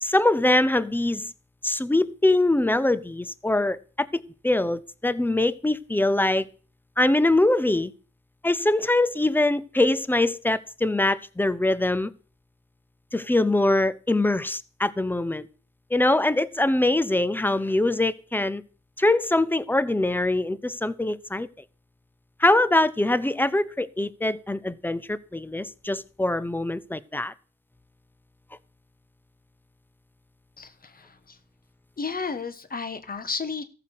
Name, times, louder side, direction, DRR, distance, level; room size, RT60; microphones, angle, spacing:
voice 1, 0.0-1.3 1.6-6.5 7.0-7.9 8.4-12.1 13.1-15.5 15.9-18.6 19.0-21.5 22.4-27.3, left 2 dB, 5° left, 0.6 m, -23 dB
voice 2, 30.6-31.4 32.0-33.6, left 5 dB, 30° left, 1.3 m, -33 dB
14.0 x 5.9 x 6.5 m
cardioid pair, 90°, 30 cm